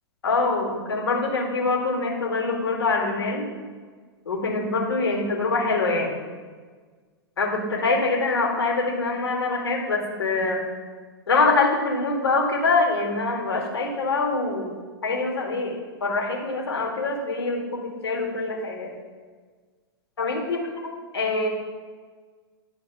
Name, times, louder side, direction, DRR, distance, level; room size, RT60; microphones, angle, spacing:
voice 1, 0.2-3.5 4.3-6.2 7.4-10.7 11.3-14.7 15.0-18.9 20.2-20.6 21.1-21.5, left 3 dB, 80° left, 0 dB, 2.2 m, -24 dB
10.5 x 4.6 x 6.9 m, 1.5 s
hypercardioid pair, 105°, 13 cm